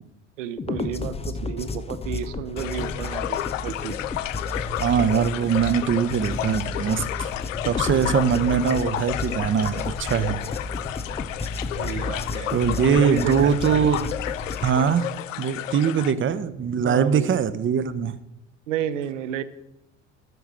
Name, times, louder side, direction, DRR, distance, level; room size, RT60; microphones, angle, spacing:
voice 1, 0.4-4.0 7.9-8.1 11.8-13.6 16.8-17.3 18.7-19.4, right 9 dB, 75° right, 14 dB, 0.8 m, -31 dB
sound 1, 0.6-14.7, left 3 dB, 15° left, 0.8 m, -32 dB
sound 2, 2.6-16.1, left 13 dB, 85° left, 0.5 m, -32 dB
voice 2, 4.8-7.3 7.6-10.4 12.5-14.1 14.6-15.1 15.4-18.2, right 7 dB, 30° right, 14 dB, 0.8 m, -22 dB
13.0 x 4.7 x 7.6 m, 0.89 s
hypercardioid pair, 65°, 37 cm